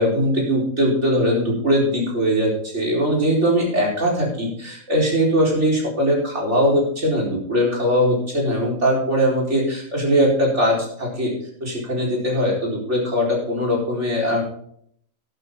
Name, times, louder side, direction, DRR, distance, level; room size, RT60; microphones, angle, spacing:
voice 1, 0.0-11.3 11.6-14.4, equal, 55° right, -2 dB, 4.7 m, -20 dB
12.0 x 11.5 x 3.8 m, 0.65 s
omnidirectional pair, 1.4 m